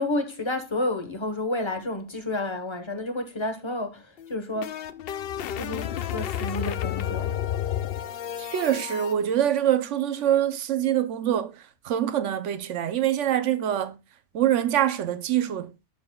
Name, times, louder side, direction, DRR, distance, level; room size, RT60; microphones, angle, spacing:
voice 1, 0.0-4.8 5.5-7.3, left 2 dB, 25° left, 1.1 m, -30 dB
sound 1, 4.2-9.1, left 10 dB, 65° left, 0.7 m, -31 dB
voice 2, 8.4-14.0 14.3-15.7, right 11 dB, 85° right, 1.0 m, -25 dB
10.5 x 6.7 x 2.3 m
omnidirectional pair, 1.2 m